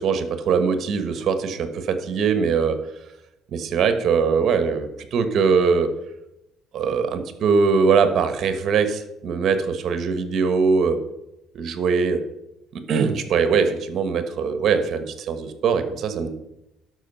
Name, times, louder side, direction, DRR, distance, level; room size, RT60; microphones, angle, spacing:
voice 1, 0.0-2.8 3.5-5.9 6.7-11.0 11.5-12.2 12.7-16.3, right 5 dB, 50° right, 9 dB, 1.2 m, -21 dB
11.5 x 6.2 x 5.5 m, 0.89 s
cardioid pair, 135°, 0 cm